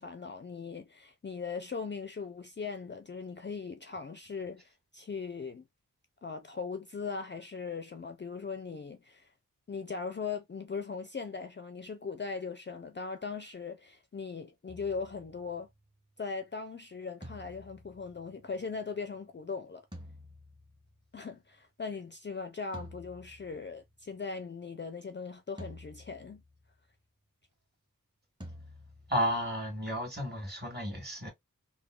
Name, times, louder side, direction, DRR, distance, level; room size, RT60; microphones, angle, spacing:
voice 1, 0.0-5.7 6.2-9.3 9.7-15.7 16.2-19.9 21.1-26.4, left 5 dB, 35° left, 0.4 m, -39 dB
Ganon Low Tom Drum, 14.7-16.0 17.2-18.9 19.9-21.3 22.7-24.1 25.6-26.8 28.4-29.8, equal, 15° right, 0.8 m, -50 dB
voice 2, 29.1-31.3, equal, 30° right, 1.7 m, -32 dB
3.6 x 2.1 x 2.3 m
wide cardioid pair, 60°, 33 cm